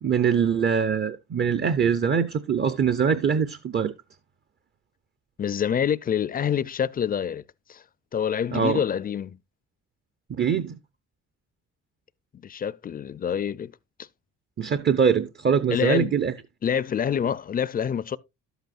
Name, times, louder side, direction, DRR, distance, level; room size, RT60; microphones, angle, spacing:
voice 1, 0.0-3.9 8.5-8.8 10.4-10.8 14.6-16.3, right 7 dB, 35° right, 0.6 m, -23 dB
voice 2, 5.4-7.4 7.7-7.8 8.1-9.4 12.4-13.7 14.0-14.1 15.7-16.1 16.6-18.2, left 8 dB, 30° left, 0.4 m, -26 dB
11.5 x 8.0 x 2.4 m
cardioid pair, 90°, 30 cm